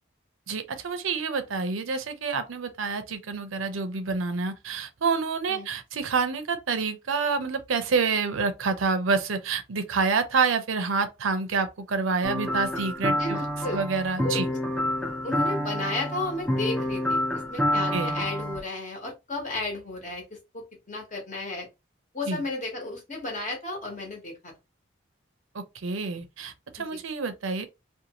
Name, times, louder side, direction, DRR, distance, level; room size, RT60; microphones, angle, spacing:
voice 1, 0.5-13.4 13.7-14.5 17.9-18.2 22.3-22.4 25.5-27.6, right 4 dB, 85° right, 0.6 m, -28 dB
sound 1, 12.2-18.6, left 1 dB, 5° left, 0.4 m, -28 dB
voice 2, 13.2-13.8 14.2-14.6 15.2-17.2 17.5-21.7 22.1-24.5 26.8-27.0, left 2 dB, 40° left, 1.0 m, -33 dB
2.5 x 2.3 x 2.9 m
head